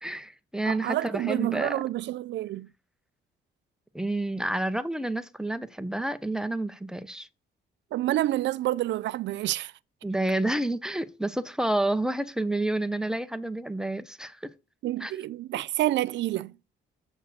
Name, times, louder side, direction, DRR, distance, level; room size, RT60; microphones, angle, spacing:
voice 1, 0.0-1.8 3.9-7.3 10.0-14.5 15.0-15.2, right 1 dB, 5° right, 0.8 m, -29 dB
voice 2, 0.6-2.7 7.9-9.7 14.8-16.5, right 15 dB, 65° right, 0.4 m, -28 dB
7.7 x 4.5 x 6.6 m
cardioid pair, 90°, 20 cm